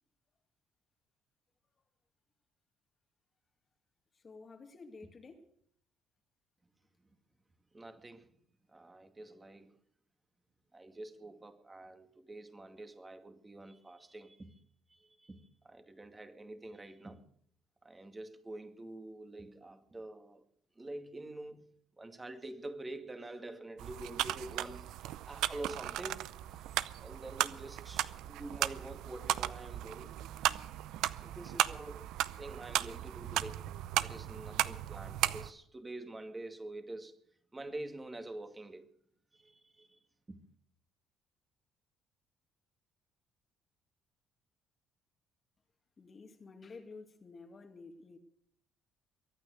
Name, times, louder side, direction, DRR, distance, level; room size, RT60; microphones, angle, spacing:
voice 1, 4.1-5.5 46.0-48.2, left 4 dB, 40° left, 2.2 m, -51 dB
voice 2, 7.7-8.3 8.7-9.7 10.7-14.6 14.9-17.2 17.8-20.4 20.8-21.7 22.0-26.7 27.0-30.2 31.2-32.1 32.4-33.6 34.0-37.2 37.5-38.9 39.3-40.0 40.3-40.4, right 2 dB, 20° right, 2.2 m, -47 dB
sound 1, 23.8-35.5, right 13 dB, 75° right, 0.6 m, -36 dB
23.0 x 9.2 x 6.5 m
supercardioid pair, 70°, 0 cm